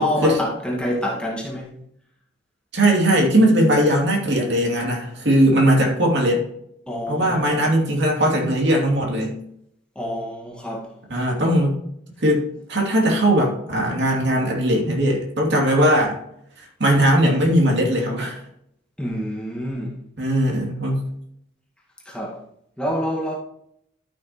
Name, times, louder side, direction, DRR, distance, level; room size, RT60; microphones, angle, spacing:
voice 1, 0.0-1.8 6.9-7.7 9.9-10.9 19.0-19.9 22.0-22.4 22.8-23.3, left 1 dB, 5° left, 1.6 m, -27 dB
voice 2, 2.7-6.4 7.1-9.3 11.1-11.8 12.2-12.4 12.7-16.2 16.8-18.4 20.2-21.0, right 1 dB, 60° right, 2.6 m, -19 dB
13.0 x 6.3 x 3.0 m
head